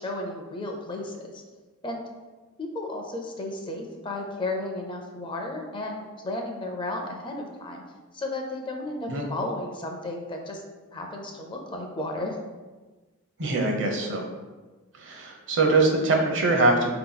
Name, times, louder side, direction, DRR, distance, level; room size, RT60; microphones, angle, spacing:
voice 1, 0.0-1.4 1.8-2.0 2.6-7.8 8.1-10.6 10.9-12.4, left 2 dB, 25° left, 2 dB, 0.5 m, -33 dB
voice 2, 13.4-14.3 14.9-16.9, right 2 dB, 60° right, 1 dB, 0.8 m, -23 dB
4.4 x 2.9 x 3.9 m, 1.2 s
head